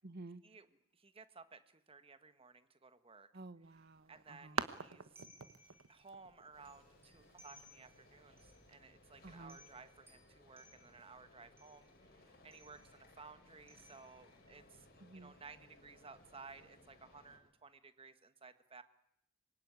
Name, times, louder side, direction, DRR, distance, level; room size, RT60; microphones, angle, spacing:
voice 1, 0.0-0.4 3.3-4.7 9.2-9.6 15.0-15.3, right 2 dB, 55° right, 14 dB, 1.1 m, -52 dB
voice 2, 1.2-1.6 1.9-2.5 2.8-3.3 4.1-4.5 4.8-5.0 6.0-6.8 7.1-8.3 8.7-9.9 10.4-11.8 12.4-12.8 13.2-14.6 15.2-17.7 18.0-18.1 18.4-18.8, right 4 dB, 30° right, 10 dB, 1.5 m, -56 dB
sound 1, 3.6-8.8, right 5 dB, 80° right, 1.2 m, -47 dB
sound 2, 5.1-6.1 6.6-8.0 8.4-8.6 9.0-9.1 9.5-11.1 11.6-12.0 12.5-13.1 13.7-14.5, equal, 10° right, 7.6 m, -63 dB
sound 3, 6.5-17.4, left 2 dB, 50° left, 5.6 m, -64 dB
25.5 x 22.5 x 9.6 m, 0.77 s
head